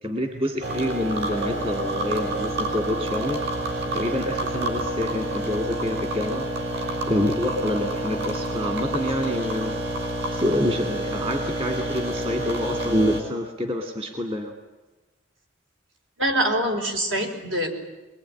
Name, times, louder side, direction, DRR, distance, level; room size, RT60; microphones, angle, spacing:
voice 1, 0.0-3.4 3.9-6.5 7.1-9.8 10.3-14.5, left 1 dB, 25° right, 4 dB, 2.2 m, -27 dB
sound 1, 0.6-13.2, right 1 dB, 55° right, 6.0 m, -28 dB
voice 2, 16.2-17.7, right 1 dB, 70° right, 3 dB, 5.1 m, -24 dB
23.5 x 22.5 x 9.9 m, 1.2 s
head